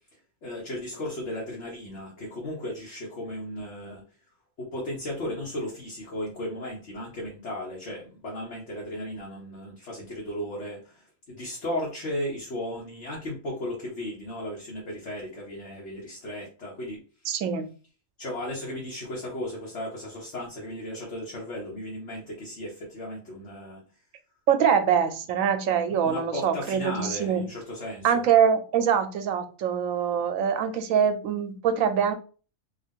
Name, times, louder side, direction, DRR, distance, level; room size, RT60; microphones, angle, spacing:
voice 1, 0.4-4.0 4.6-17.0 18.2-23.8 24.6-24.7 26.0-28.2, left 1 dB, 55° left, -4 dB, 1.3 m, -35 dB
voice 2, 17.3-17.7 24.5-27.4 28.0-32.1, right 7 dB, 80° right, 8 dB, 1.0 m, -24 dB
3.6 x 2.4 x 3.6 m, 0.36 s
omnidirectional pair, 1.4 m